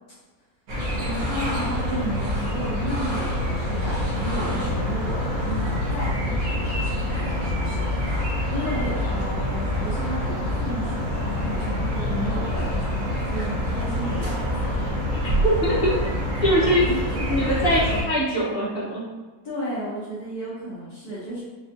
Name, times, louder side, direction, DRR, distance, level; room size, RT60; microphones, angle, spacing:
sound 1, 0.7-18.0, left 1 dB, 55° right, 1.4 m, -26 dB
voice 1, 1.0-8.1 8.5-14.4 16.6-17.0 17.4-17.6 19.4-21.4, right 1 dB, 60° left, -8 dB, 1.3 m, -33 dB
voice 2, 15.1-16.0 16.4-16.8 17.3-19.0, equal, 35° left, -7 dB, 1.0 m, -22 dB
4.6 x 2.7 x 2.6 m, 1.3 s
omnidirectional pair, 2.1 m